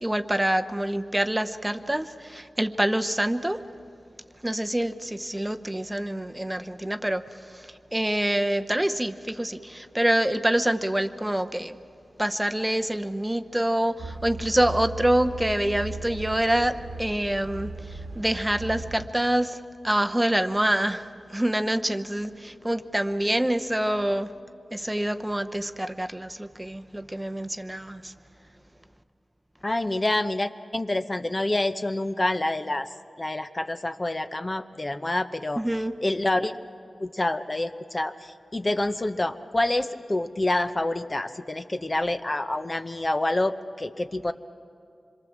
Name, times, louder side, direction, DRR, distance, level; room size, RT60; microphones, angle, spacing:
voice 1, 0.0-3.6 4.4-11.8 12.2-24.3 24.7-28.1 35.6-35.9, right 1 dB, 15° right, 8 dB, 0.8 m, -26 dB
sound 1, 14.0-19.1, right 2 dB, 65° right, 1.3 m, -37 dB
voice 2, 29.6-32.9 33.2-35.6 36.0-36.5 37.0-44.3, left 1 dB, 30° left, 8 dB, 0.8 m, -27 dB
26.0 x 22.5 x 7.3 m, 2.4 s
cardioid pair, 55°, 0 cm